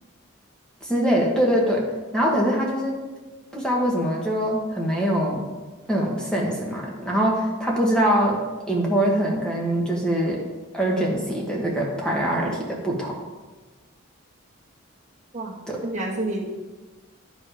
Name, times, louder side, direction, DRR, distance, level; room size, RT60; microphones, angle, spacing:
voice 1, 0.8-1.9 2.1-3.0 3.5-5.4 5.9-10.4 10.7-13.2 15.7-15.8, right 1 dB, 5° left, -2 dB, 1.4 m, -23 dB
voice 2, 15.3-16.4, right 2 dB, 35° right, -2 dB, 1.5 m, -29 dB
10.5 x 5.2 x 5.0 m, 1.2 s
head